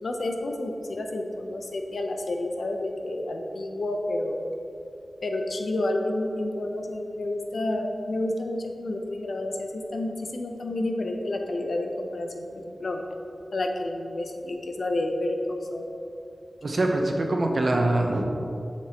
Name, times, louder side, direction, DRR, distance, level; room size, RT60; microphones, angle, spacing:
voice 1, 0.0-4.5 5.2-13.0 13.5-15.9, left 1 dB, 70° left, 3 dB, 0.6 m, -30 dB
voice 2, 16.6-18.2, right 2 dB, 55° right, 2 dB, 0.8 m, -24 dB
7.6 x 6.0 x 2.9 m, 2.7 s
wide cardioid pair, 100°, 0 cm